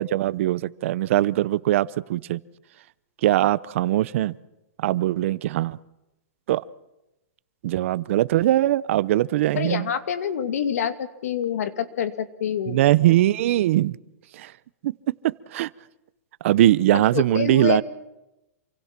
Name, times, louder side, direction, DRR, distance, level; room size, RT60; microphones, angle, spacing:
voice 1, 0.0-2.4 3.2-4.3 4.8-5.8 6.5-6.6 7.6-9.8 12.7-14.0 14.4-14.5 14.8-14.9 15.2-15.7 16.4-17.8, right 14 dB, 55° right, 19 dB, 0.8 m, -21 dB
voice 2, 9.5-12.8 16.9-17.8, left 8 dB, 75° left, 9 dB, 2.3 m, -27 dB
28.0 x 24.0 x 6.0 m, 0.96 s
hypercardioid pair, 150°, 8 cm